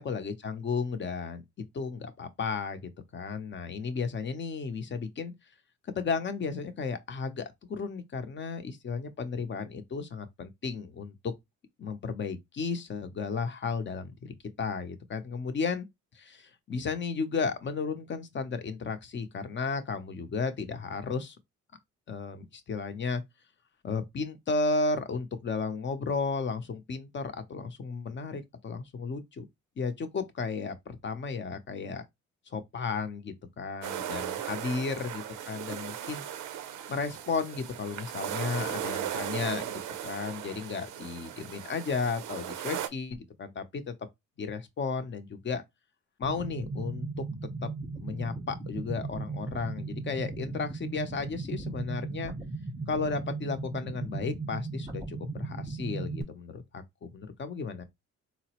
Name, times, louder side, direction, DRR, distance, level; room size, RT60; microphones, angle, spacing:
voice 1, 0.0-1.4 1.7-5.3 6.0-11.3 11.8-14.2 14.6-15.9 16.1-21.3 22.1-23.2 23.8-29.4 29.8-32.0 32.5-36.2 36.9-43.8 44.4-45.6 46.2-47.1 47.6-52.3 52.9-57.8, left 4 dB, 40° left, 0.7 m, -34 dB
sound 1, 33.8-42.9, right 10 dB, 80° right, 0.5 m, -37 dB
sound 2, 46.2-56.2, right 3 dB, 10° right, 0.8 m, -37 dB
3.8 x 2.0 x 2.8 m
cardioid pair, 90°, 30 cm